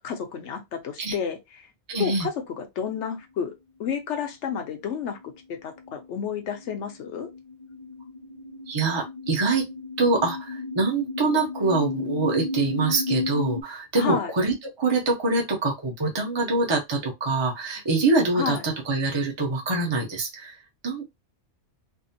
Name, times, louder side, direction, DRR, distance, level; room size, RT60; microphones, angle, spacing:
voice 1, 0.0-1.7 2.0-3.5 3.8-5.2 5.5-7.3 13.9-14.3 18.3-18.6, left 7 dB, 75° left, 1.1 m, -31 dB
voice 2, 1.9-2.3 8.7-9.6 10.0-20.6 20.8-21.1, right 3 dB, 30° right, 0.7 m, -25 dB
sound 1, 5.1-13.6, left 3 dB, 45° left, 0.5 m, -34 dB
3.5 x 2.0 x 2.6 m
omnidirectional pair, 1.2 m